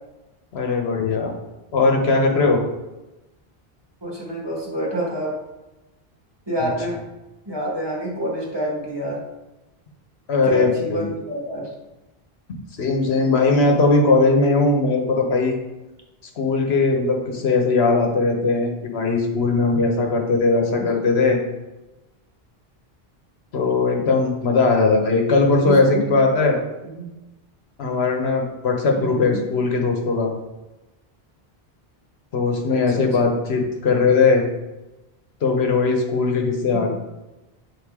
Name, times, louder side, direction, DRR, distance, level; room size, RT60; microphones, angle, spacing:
voice 1, 0.5-1.3 1.7-2.6 6.6-6.7 10.3-11.1 12.8-15.5 16.4-21.4 23.5-26.6 27.8-30.3 32.3-34.4 35.4-36.9, left 3 dB, 90° left, 2 dB, 1.2 m, -19 dB
voice 2, 4.0-5.3 6.5-7.0 7.4-9.2 10.4-11.7 20.8-20.9 25.6-26.2 27.0-27.1 29.0-29.5 32.7-33.3 36.7-36.9, equal, 25° right, -4 dB, 1.5 m, -27 dB
8.1 x 3.9 x 3.6 m, 1.0 s
omnidirectional pair, 1.0 m